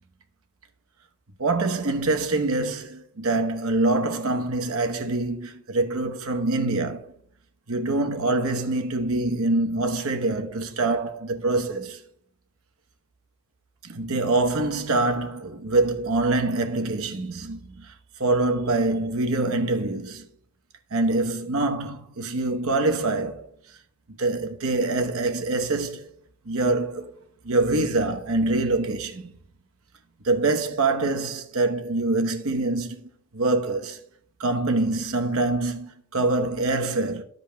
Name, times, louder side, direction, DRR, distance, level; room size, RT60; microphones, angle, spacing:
voice 1, 1.4-7.1 7.7-12.0 13.8-17.9 18.2-20.3 20.9-23.4 24.2-26.0 26.5-27.1 27.4-29.3 30.2-34.0 34.4-37.2, right 2 dB, 65° right, 1.0 m, -25 dB
14.5 x 5.2 x 2.2 m
head